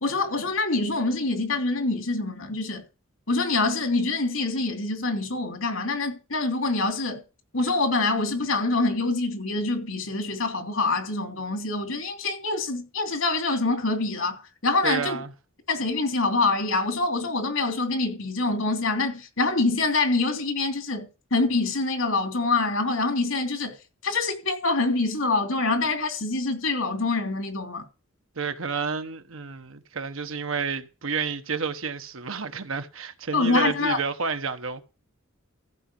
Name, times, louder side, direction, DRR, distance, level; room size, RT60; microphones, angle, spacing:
voice 1, 0.0-2.8 3.3-7.2 7.5-15.2 15.7-23.8 24.0-27.8 33.3-34.0, left 3 dB, 80° left, 3.2 m, -25 dB
voice 2, 14.8-15.3 28.4-34.8, right 5 dB, 75° right, 1.1 m, -30 dB
15.0 x 5.1 x 7.0 m
head